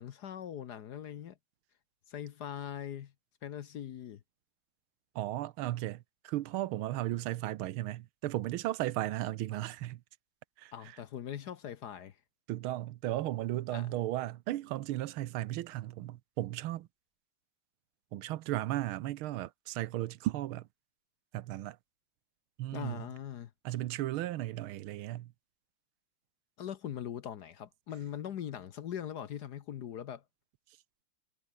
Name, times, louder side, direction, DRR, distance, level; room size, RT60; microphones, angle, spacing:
voice 1, 0.0-1.4 2.1-3.1 3.4-4.2 10.7-12.2 13.7-14.0 22.7-23.5 26.6-30.2, left 9 dB, 60° left, 1.3 m, -41 dB
voice 2, 5.1-10.0 10.6-11.0 12.5-16.9 18.1-20.7 21.3-21.8 22.6-23.1 23.6-25.3, right 15 dB, 80° right, 1.6 m, -35 dB
omnidirectional pair, 2.3 m